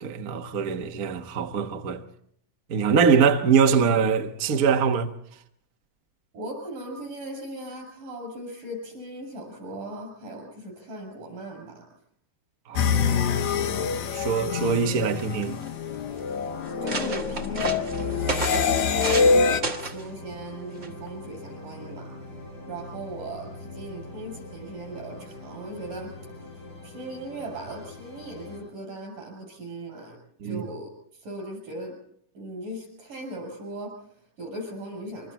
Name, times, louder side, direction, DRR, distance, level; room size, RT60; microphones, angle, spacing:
voice 1, 0.0-2.0 2.7-5.1 12.7-13.4 14.1-15.6 30.4-30.6, right 6 dB, 65° right, 0.8 m, -23 dB
voice 2, 6.3-11.9 16.8-22.4 22.7-26.1 26.4-31.9 32.4-35.3, right 1 dB, 80° right, 8.9 m, -38 dB
sound 1, 12.8-19.6, left 5 dB, 65° left, 2.4 m, -25 dB
sound 2, 14.8-14.9 15.1-15.7 16.3-16.4 16.6-19.3 19.6-20.0 20.8-21.1, right 4 dB, 30° right, 1.4 m, -32 dB
sound 3, 17.9-28.6, left 2 dB, 25° left, 6.9 m, -43 dB
26.0 x 24.0 x 4.4 m
omnidirectional pair, 3.7 m